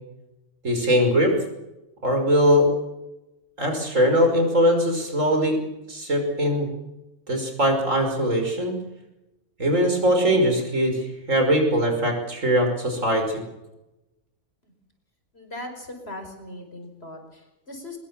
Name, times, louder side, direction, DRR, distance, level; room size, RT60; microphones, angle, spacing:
voice 1, 0.6-1.3 2.0-2.7 3.6-5.6 5.9-6.7 7.3-8.7 9.6-13.4, equal, 60° right, 4 dB, 6.0 m, -21 dB
voice 2, 15.3-18.0, left 1 dB, 45° left, 5 dB, 5.4 m, -39 dB
24.0 x 22.0 x 7.3 m, 0.99 s
omnidirectional pair, 1.5 m